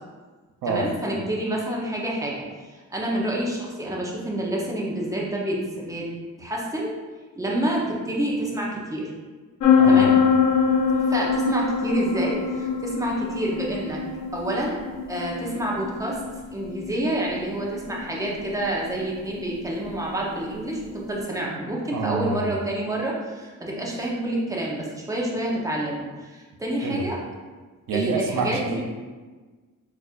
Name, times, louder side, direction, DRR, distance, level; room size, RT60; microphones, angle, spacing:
voice 1, 0.7-6.1 6.4-6.9 7.4-9.1 9.9-10.1 11.1-14.0 14.3-14.8 15.1-16.2 16.5-27.2 27.9-28.8, right 1 dB, 10° right, -3 dB, 0.7 m, -28 dB
sound 1, 9.6-21.1, left 6 dB, 75° left, 0.6 m, -24 dB
voice 2, 9.8-10.1 21.9-22.5 26.8-27.1 27.9-28.8, right 4 dB, 90° right, 2 dB, 0.6 m, -27 dB
4.1 x 2.6 x 2.4 m, 1.3 s
cardioid pair, 95°, 33 cm